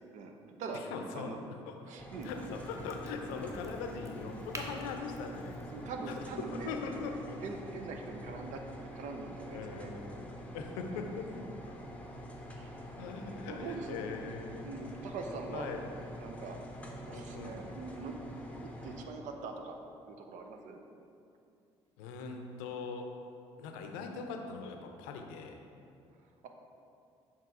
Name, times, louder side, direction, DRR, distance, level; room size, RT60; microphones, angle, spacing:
voice 1, 0.1-0.8 1.1-1.4 1.9-2.3 5.7-6.7 7.4-9.9 10.8-11.2 12.5-12.8 13.3-14.0 14.6-15.7 16.2-16.6 17.0-18.2 18.6-19.8 20.1-20.8, right 4 dB, 60° right, 4 dB, 0.6 m, -43 dB
voice 2, 0.7-1.4 1.6-1.9 2.2-5.7 6.1-6.2 6.5-7.4 9.5-10.3 10.5-11.5 13.0-14.7 15.5-15.8 17.1-17.6 22.0-23.2 23.6-25.6, left 4 dB, 70° left, 4 dB, 0.5 m, -41 dB
sound 1, 2.0-19.0, equal, 10° left, 0.8 m, -46 dB
Crack, 2.2-7.7, right 1 dB, 20° right, 0.8 m, -50 dB
6.7 x 3.0 x 4.7 m, 2.6 s
figure-of-eight pair, 50°, 14 cm